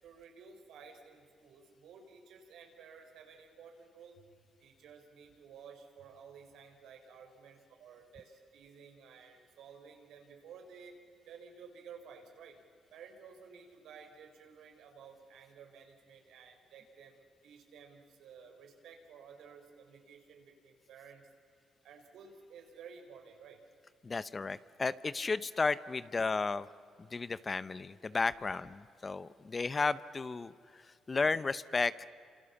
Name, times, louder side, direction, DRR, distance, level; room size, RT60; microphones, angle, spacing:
voice 1, 0.0-4.3 4.6-10.9 11.3-12.6 12.9-21.3 21.8-23.6 28.4-28.6, right 6 dB, 80° right, 4 dB, 4.9 m, -54 dB
voice 2, 24.0-26.7 27.1-30.8 31.1-32.1, left 4 dB, 30° left, 16 dB, 0.8 m, -33 dB
30.0 x 27.0 x 7.2 m, 2.4 s
cardioid pair, 90°, 0 cm